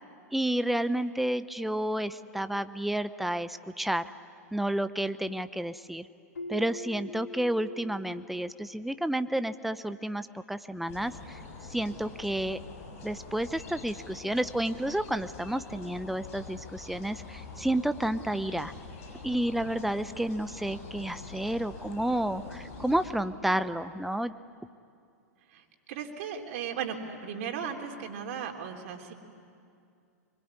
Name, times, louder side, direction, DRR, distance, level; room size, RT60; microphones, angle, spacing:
voice 1, 0.3-4.0 4.5-6.1 6.5-11.4 11.7-12.6 13.0-18.7 19.2-24.3, right 1 dB, ahead, 12 dB, 0.8 m, -30 dB
Keyboard (musical), 6.3-9.1, left 2 dB, 85° left, 3.2 m, -43 dB
sound 1, 10.9-23.1, left 4 dB, 60° left, 6.4 m, -45 dB
voice 2, 25.9-29.1, right 7 dB, 55° right, 3 dB, 3.3 m, -36 dB
24.5 x 23.0 x 9.8 m, 2.4 s
hypercardioid pair, 105°, 9 cm